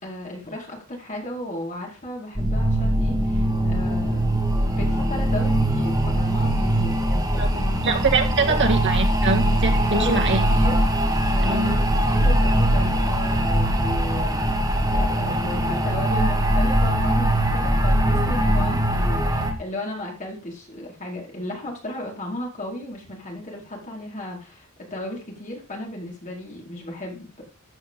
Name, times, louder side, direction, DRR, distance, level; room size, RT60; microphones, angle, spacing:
voice 1, 0.0-4.2 4.7-7.9 8.3-8.9 9.9-10.8 11.3-27.4, left 1 dB, 35° left, -1 dB, 4.6 m, -35 dB
sound 1, 2.4-19.5, right 1 dB, 15° right, 2.1 m, -21 dB
voice 2, 7.8-10.4 11.4-11.8, right 4 dB, 55° right, 3 dB, 1.9 m, -23 dB
14.5 x 8.9 x 3.8 m, 0.34 s
head